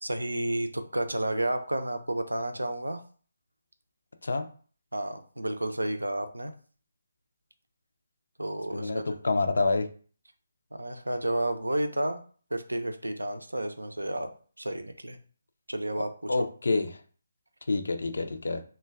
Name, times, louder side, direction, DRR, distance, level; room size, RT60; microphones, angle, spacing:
voice 1, 0.0-3.0 4.9-6.5 8.4-9.2 10.7-12.2 12.5-14.3 14.6-15.2 15.7-16.5, right 1 dB, 85° right, 7 dB, 0.4 m, -31 dB
voice 2, 8.7-9.9 16.3-16.9 17.7-18.6, left 3 dB, 65° left, 8 dB, 0.4 m, -27 dB
2.2 x 2.2 x 3.3 m, 0.42 s
figure-of-eight pair, 145°, 0 cm